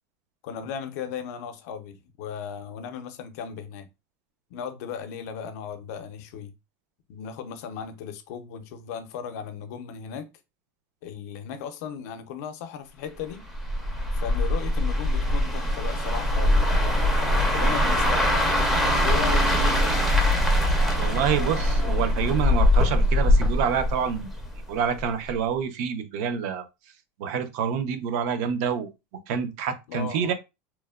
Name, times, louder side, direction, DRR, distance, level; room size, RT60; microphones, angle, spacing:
voice 1, 0.4-3.9 4.5-6.5 7.1-10.3 11.0-13.5 14.1-17.1 17.5-18.7 19.0-20.3 29.9-30.3, left 7 dB, 70° left, 0.5 m, -36 dB
sound 1, 13.5-24.6 25.0-25.3, left 1 dB, 5° right, 0.5 m, -22 dB
voice 2, 21.0-24.3 24.7-26.7 27.2-28.9 29.3-30.3, right 7 dB, 60° right, 0.5 m, -27 dB
3.0 x 2.1 x 2.2 m
supercardioid pair, 150°, 9 cm